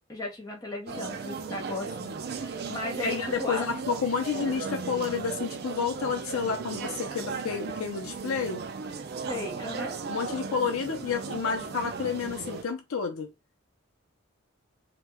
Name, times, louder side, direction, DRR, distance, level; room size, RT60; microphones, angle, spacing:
voice 1, 0.1-3.7 9.3-10.0, left 1 dB, 20° left, 0.6 m, -36 dB
sound 1, 0.9-12.6, right 5 dB, 50° right, 0.4 m, -36 dB
voice 2, 3.0-8.6 10.1-13.3, left 6 dB, 85° left, 0.5 m, -30 dB
2.8 x 2.1 x 3.5 m
head